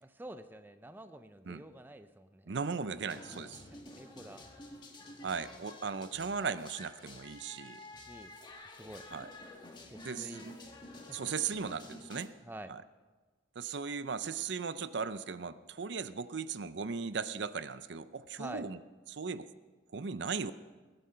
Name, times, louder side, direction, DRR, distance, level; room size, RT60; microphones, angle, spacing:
voice 1, 0.0-2.5 4.0-4.5 8.0-8.3 8.7-9.1 9.9-10.5 11.1-11.2 12.4-12.8 18.4-18.7, right 1 dB, 10° right, 10 dB, 0.5 m, -48 dB
voice 2, 2.5-3.6 5.2-7.8 9.1-9.3 10.0-10.5 11.1-12.3 12.7-12.8 13.6-18.8 19.1-19.5 19.9-20.5, right 5 dB, 65° right, 14 dB, 0.6 m, -37 dB
sound 1, 3.1-12.3, left 2 dB, 25° left, 1.5 m, -50 dB
20.5 x 9.7 x 5.6 m, 1.3 s
head